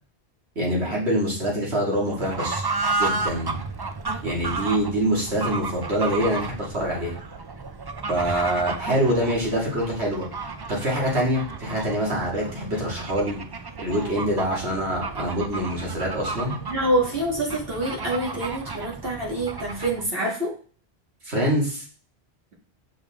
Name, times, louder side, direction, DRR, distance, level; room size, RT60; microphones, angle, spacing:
voice 1, 0.6-2.6 3.0-3.6 4.2-7.2 8.1-10.3 10.7-13.4 13.8-16.6 21.2-21.8, right 1 dB, 80° right, -3 dB, 2.7 m, -25 dB
Fowl / Bird, 2.0-20.1, right 3 dB, 30° right, 0.4 m, -33 dB
voice 2, 16.7-20.6, right 1 dB, 60° right, -2 dB, 2.3 m, -26 dB
6.7 x 5.2 x 3.6 m, 0.40 s
omnidirectional pair, 1.1 m